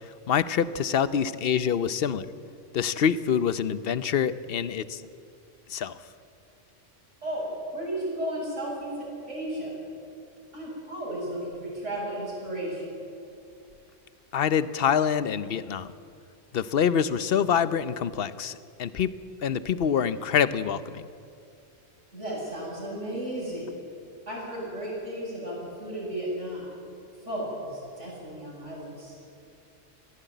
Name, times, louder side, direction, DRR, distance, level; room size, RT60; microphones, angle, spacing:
voice 1, 0.0-2.3 2.7-5.0 5.7-6.0 14.3-15.9 16.5-19.1 19.4-21.0, left 8 dB, 55° left, 15 dB, 0.9 m, -26 dB
voice 2, 7.2-9.7 10.5-12.9 22.1-23.7 24.3-26.7 27.2-29.1, right 1 dB, 75° right, -5 dB, 8.4 m, -34 dB
20.5 x 16.0 x 9.1 m, 2.5 s
omnidirectional pair, 1.3 m